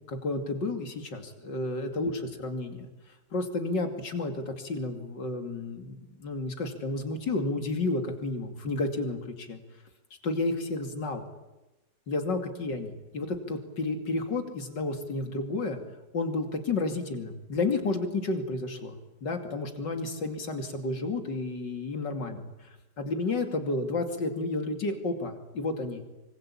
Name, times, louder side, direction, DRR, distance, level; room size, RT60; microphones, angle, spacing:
voice 1, 0.1-2.9 3.3-9.6 10.2-11.2 12.1-15.8 16.1-22.4 23.0-26.0, left 3 dB, 85° left, 6 dB, 3.3 m, -31 dB
25.5 x 25.0 x 8.7 m, 1.0 s
omnidirectional pair, 1.9 m